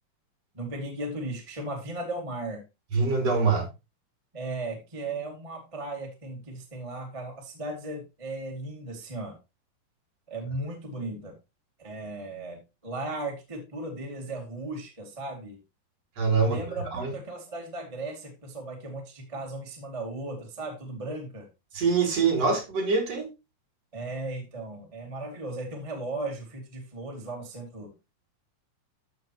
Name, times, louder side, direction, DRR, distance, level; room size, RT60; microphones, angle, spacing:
voice 1, 0.5-2.6 4.3-9.4 10.3-11.3 11.8-15.6 16.4-21.5 23.9-27.9, right 2 dB, 10° right, 1.7 m, -36 dB
voice 2, 2.9-3.7 16.2-16.6 16.9-17.1 21.7-23.3, right 4 dB, 50° right, 3.7 m, -24 dB
13.5 x 5.9 x 3.1 m
omnidirectional pair, 4.0 m